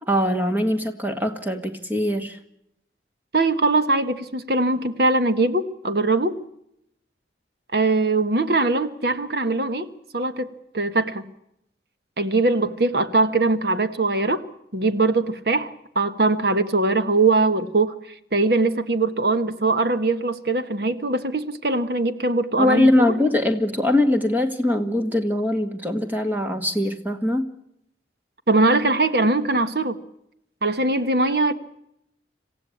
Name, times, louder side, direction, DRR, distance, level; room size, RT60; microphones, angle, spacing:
voice 1, 0.0-2.4 22.6-27.5, left 1 dB, 10° right, 6 dB, 1.9 m, -22 dB
voice 2, 3.3-6.4 7.7-10.5 10.7-11.3 12.2-14.4 14.7-17.9 18.3-23.2 28.5-30.0 30.6-31.5, right 2 dB, 55° right, 11 dB, 1.4 m, -21 dB
27.0 x 15.5 x 8.6 m, 0.79 s
head